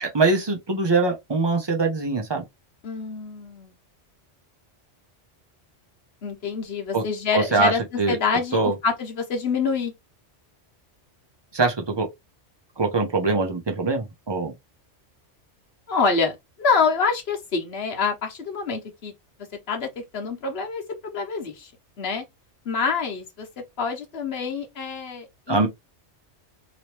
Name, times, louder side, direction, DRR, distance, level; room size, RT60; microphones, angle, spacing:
voice 1, 0.0-2.4 6.9-7.0 7.3-7.7 8.0-8.2 8.5-8.7 11.5-12.1 12.8-14.5 25.5-25.7, right 3 dB, 25° right, 0.6 m, -22 dB
voice 2, 2.8-3.7 6.2-7.8 8.1-9.9 15.9-16.3 16.6-19.1 19.7-21.7 22.0-22.2 22.6-23.5 23.8-25.7, left 5 dB, 65° left, 1.2 m, -26 dB
2.9 x 2.9 x 3.0 m
omnidirectional pair, 1.2 m